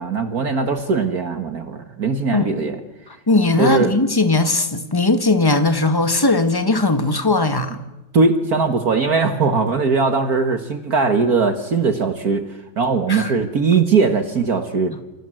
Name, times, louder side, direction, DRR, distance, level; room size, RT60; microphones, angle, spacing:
voice 1, 0.0-2.8 3.6-3.9 8.1-12.5 12.8-14.9, right 4 dB, 55° right, 2.0 m, -19 dB
voice 2, 3.3-7.8 13.1-13.3, left 2 dB, 10° left, 1.8 m, -18 dB
28.5 x 25.5 x 7.8 m
omnidirectional pair, 2.0 m